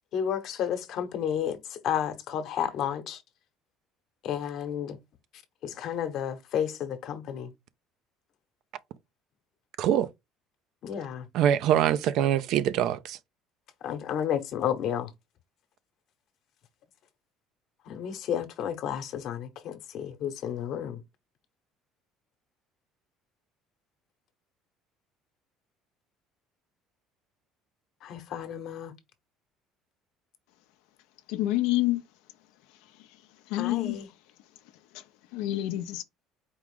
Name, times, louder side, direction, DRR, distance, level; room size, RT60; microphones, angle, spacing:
voice 1, 0.1-3.2 4.2-5.0 5.6-7.5 10.8-11.3 13.8-15.1 17.9-21.0 28.0-28.9 33.6-34.1, left 9 dB, 60° left, 0.9 m, -32 dB
voice 2, 9.8-10.1 11.3-13.2, right 10 dB, 65° right, 0.4 m, -24 dB
voice 3, 31.3-32.0 33.5-34.0 35.3-36.0, left 16 dB, 85° left, 0.5 m, -27 dB
4.6 x 2.5 x 3.5 m
supercardioid pair, 95°, 0 cm